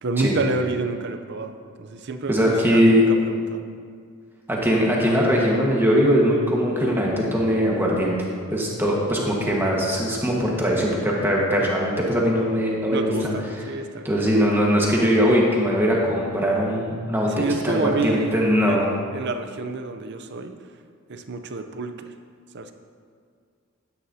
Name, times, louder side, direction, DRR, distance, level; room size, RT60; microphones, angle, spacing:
voice 1, 0.0-3.6 11.6-11.7 12.9-14.1 17.3-18.8 19.1-20.5 21.1-22.1 22.5-22.7, right 3 dB, 50° right, 8 dB, 0.5 m, -29 dB
voice 2, 2.3-3.0 4.5-8.2 8.5-13.3 14.0-18.9, equal, 10° right, -3 dB, 1.4 m, -21 dB
12.5 x 9.4 x 2.7 m, 2.1 s
head